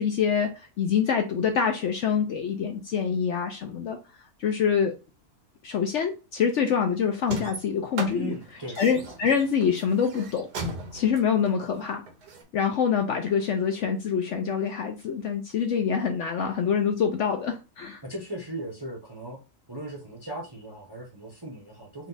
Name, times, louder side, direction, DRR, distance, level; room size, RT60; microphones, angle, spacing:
voice 1, 0.0-4.0 4.4-5.0 5.6-8.3 8.8-10.5 10.9-12.0 12.5-18.0, left 7 dB, 60° left, 0.8 m, -25 dB
sound 1, 7.2-12.4, right 2 dB, 85° right, 1.5 m, -37 dB
voice 2, 8.1-8.8 18.0-19.4 19.7-22.1, right 1 dB, 20° right, 0.7 m, -37 dB
4.2 x 2.3 x 3.9 m
omnidirectional pair, 1.6 m